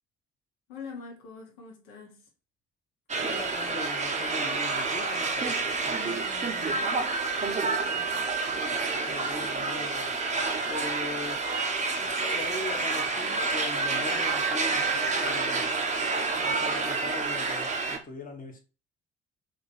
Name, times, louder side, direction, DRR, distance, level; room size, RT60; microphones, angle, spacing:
voice 1, 0.7-2.3 5.9-7.0 7.6-8.6, left 4 dB, 70° left, 1.0 m, -45 dB
sound 1, 3.1-18.0, right 4 dB, 20° right, 0.6 m, -28 dB
voice 2, 3.2-5.6 9.0-11.6 12.0-15.8 16.4-18.6, left 3 dB, 25° left, 0.9 m, -40 dB
3.0 x 2.5 x 4.0 m
figure-of-eight pair, 45°, 34 cm